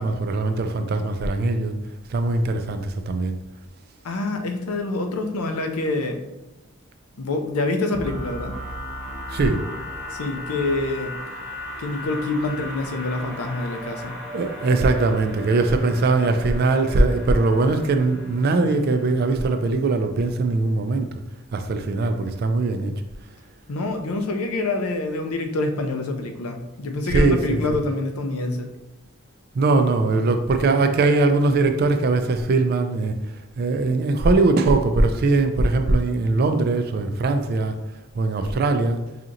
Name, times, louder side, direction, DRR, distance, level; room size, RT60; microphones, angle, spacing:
voice 1, 0.0-1.7 2.1-3.4 9.3-9.6 14.3-21.1 21.5-22.9 27.1-27.8 29.5-33.2 33.6-37.8 38.1-39.0, right 3 dB, 45° right, 7 dB, 0.3 m, -21 dB
voice 2, 4.0-6.2 7.2-8.6 10.1-11.2 11.8-14.2 23.7-28.7, left 2 dB, 85° left, 5 dB, 0.5 m, -26 dB
sound 1, 7.9-19.7, equal, ahead, 1.1 m, -36 dB
5.0 x 2.8 x 2.5 m, 0.99 s
head